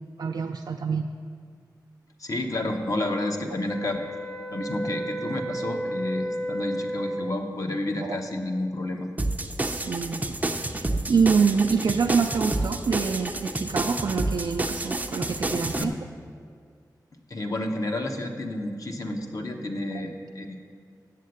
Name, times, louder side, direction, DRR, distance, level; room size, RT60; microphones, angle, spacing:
voice 1, 0.2-1.1 8.0-8.2 9.6-10.3 10.7-15.9, right 5 dB, 70° right, 2 dB, 0.4 m, -26 dB
voice 2, 2.2-4.0 4.5-9.1 15.8-16.0 17.3-20.6, left 1 dB, 50° left, 3 dB, 1.0 m, -30 dB
sound 1, 3.6-7.6, right 1 dB, 5° left, 0.7 m, -32 dB
sound 2, 9.2-15.8, right 2 dB, 20° right, 0.6 m, -29 dB
7.6 x 7.4 x 7.9 m, 2.1 s
wide cardioid pair, 85°, 7 cm